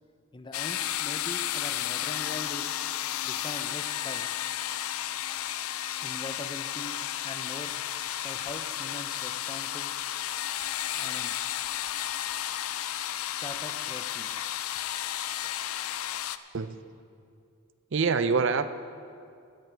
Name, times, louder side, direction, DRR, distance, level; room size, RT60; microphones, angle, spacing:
voice 1, 0.3-2.8 3.2-4.3 6.0-7.0 7.2-7.7 8.2-9.9 11.0-11.3 13.4-14.3, left 2 dB, 20° left, 8 dB, 0.6 m, -42 dB
sound 1, 0.5-16.4, left 12 dB, 80° left, 0.4 m, -33 dB
voice 2, 17.9-18.7, right 5 dB, 60° right, 12 dB, 0.5 m, -25 dB
15.5 x 11.0 x 4.6 m, 2.4 s
head